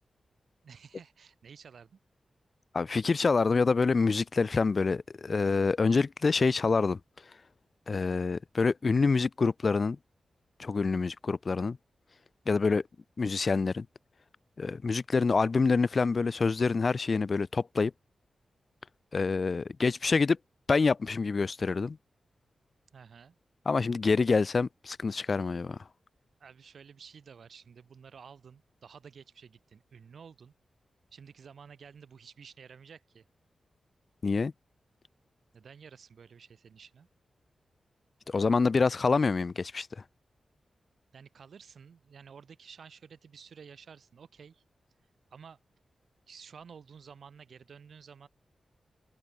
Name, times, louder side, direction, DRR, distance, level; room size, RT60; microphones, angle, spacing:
voice 1, 0.6-2.0 12.5-12.8 22.9-23.4 26.4-30.5 31.1-33.2 35.5-37.1 41.1-44.6 45.3-45.6 46.3-48.3, right 6 dB, 70° right, 4.1 m, -52 dB
voice 2, 2.7-7.0 7.9-10.0 10.6-11.8 12.5-12.8 13.2-13.9 14.6-17.9 19.1-20.4 20.7-22.0 23.7-25.8 34.2-34.5 38.3-39.9, left 4 dB, 45° left, 0.4 m, -26 dB
open air
wide cardioid pair, 95°, 0 cm